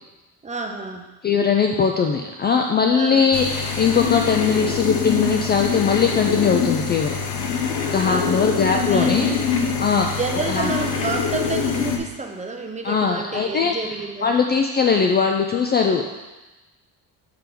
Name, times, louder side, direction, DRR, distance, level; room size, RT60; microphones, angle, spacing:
voice 1, 0.4-1.1 2.9-3.2 8.0-9.4 9.9-14.4, right 3 dB, 20° right, 4 dB, 0.6 m, -30 dB
voice 2, 1.2-7.2 7.9-9.3 9.8-10.1 10.5-10.7 12.8-13.8 14.2-16.0, left 6 dB, 25° left, 3 dB, 0.3 m, -20 dB
sound 1, 3.3-12.0, left 6 dB, 85° left, 1.0 m, -24 dB
6.7 x 3.5 x 5.9 m, 1.1 s
cardioid pair, 135°, 39 cm